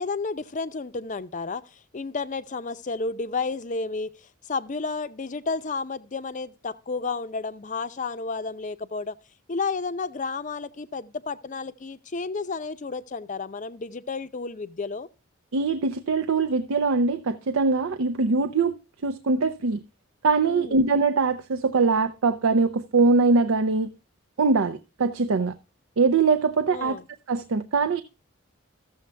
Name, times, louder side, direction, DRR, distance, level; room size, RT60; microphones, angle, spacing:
voice 1, 0.0-4.1 4.4-9.1 9.5-15.1 20.5-20.8 26.7-27.0, left 4 dB, 35° left, 0.5 m, -31 dB
voice 2, 15.5-18.8 19.0-19.8 20.2-23.9 24.4-25.5 26.0-27.0 27.3-28.0, right 4 dB, 85° right, 0.6 m, -22 dB
14.0 x 7.1 x 3.3 m
head